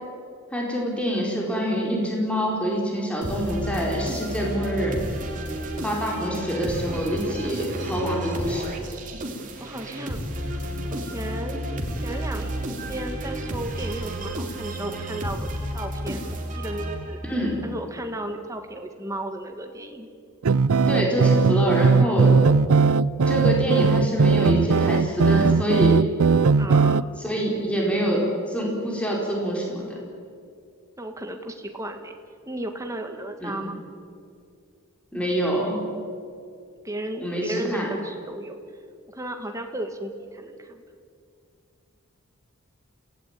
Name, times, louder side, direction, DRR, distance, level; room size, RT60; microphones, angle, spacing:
voice 1, 0.5-5.0 5.8-8.7 17.2-17.6 20.9-22.3 23.3-26.0 27.2-29.8 33.4-33.6 35.1-35.8 37.2-37.9, equal, 5° left, -2 dB, 4.8 m, -26 dB
sound 1, 3.2-17.5, right 1 dB, 35° right, 3.2 m, -31 dB
voice 2, 9.6-10.6 10.9-11.6 12.0-17.2 17.6-20.1 26.6-27.1 31.0-32.1 32.5-33.8 36.8-38.6 39.1-40.8, right 1 dB, 15° right, 5 dB, 2.0 m, -34 dB
sound 2, 20.4-27.0, right 4 dB, 80° right, 0.5 m, -19 dB
27.5 x 17.5 x 9.1 m, 2.3 s
head